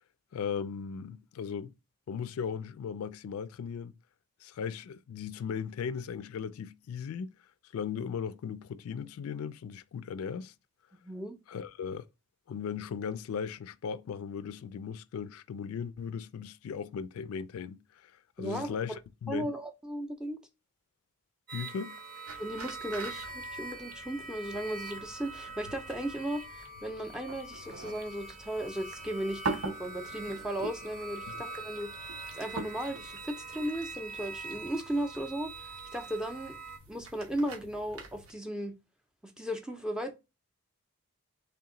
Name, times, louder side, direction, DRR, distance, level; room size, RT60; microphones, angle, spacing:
voice 1, 0.3-1.7 2.1-3.9 4.4-7.3 7.7-10.5 11.5-12.1 12.5-18.1 18.4-19.5 21.5-22.0, left 7 dB, 85° left, 0.3 m, -37 dB
voice 2, 11.0-11.4 18.4-18.8 19.3-20.4 22.4-35.5 35.9-36.6 36.9-38.7 39.2-40.1, right 1 dB, 5° right, 0.4 m, -36 dB
sound 1, 21.5-36.8, right 3 dB, 40° right, 0.7 m, -44 dB
sound 2, 22.3-38.3, right 3 dB, 80° right, 0.9 m, -45 dB
3.5 x 2.9 x 3.7 m
head